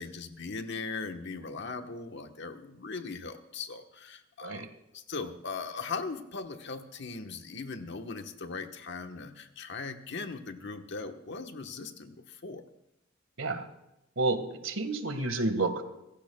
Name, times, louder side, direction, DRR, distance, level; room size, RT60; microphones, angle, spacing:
voice 1, 0.0-4.7 4.9-12.6, left 4 dB, 60° left, 6 dB, 1.2 m, -39 dB
voice 2, 14.1-15.8, right 2 dB, 90° right, 8 dB, 1.7 m, -30 dB
27.0 x 15.5 x 2.3 m, 0.88 s
head